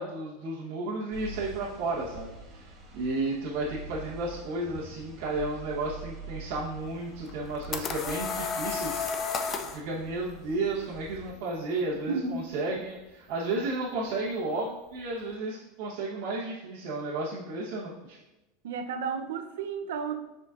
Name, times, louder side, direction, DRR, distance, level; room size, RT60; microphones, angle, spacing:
voice 1, 0.0-2.7 2.9-9.0 9.6-18.2, right 2 dB, 55° right, -7 dB, 1.2 m, -33 dB
sound 1, 1.1-11.3, right 2 dB, 20° right, 1.3 m, -45 dB
sound 2, 7.3-9.8, left 5 dB, 25° left, 0.4 m, -32 dB
voice 2, 12.1-12.4 18.6-20.1, right 5 dB, 85° right, 6 dB, 0.7 m, -32 dB
8.2 x 5.1 x 2.5 m, 1.0 s
supercardioid pair, 165°, 0 cm